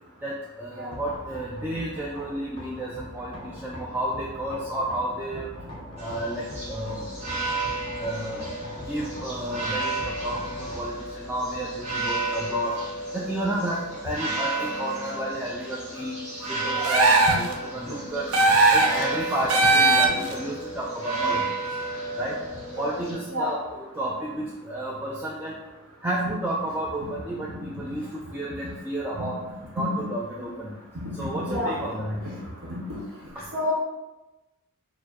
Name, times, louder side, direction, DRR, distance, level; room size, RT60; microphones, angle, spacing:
voice 1, 0.2-5.5 6.0-7.1 7.6-7.7 8.0-8.5 8.9-16.1 16.4-18.4 18.7-21.4 22.2-22.4 22.8-25.5 26.0-29.4 29.7-30.8 31.2-32.2 33.4-33.5, right 1 dB, 10° right, -4 dB, 0.3 m, -31 dB
sound 1, 0.9-14.8, left 1 dB, 20° left, 0.9 m, -42 dB
sound 2, 6.0-23.1, right 2 dB, 30° right, 1.2 m, -33 dB
sound 3, 16.8-17.5 18.3-19.0 19.5-20.3, right 2 dB, 75° right, 0.5 m, -18 dB
voice 2, 31.2-31.9 33.5-33.7, left 1 dB, 50° right, -5 dB, 1.0 m, -30 dB
4.4 x 2.1 x 4.5 m, 1.0 s
head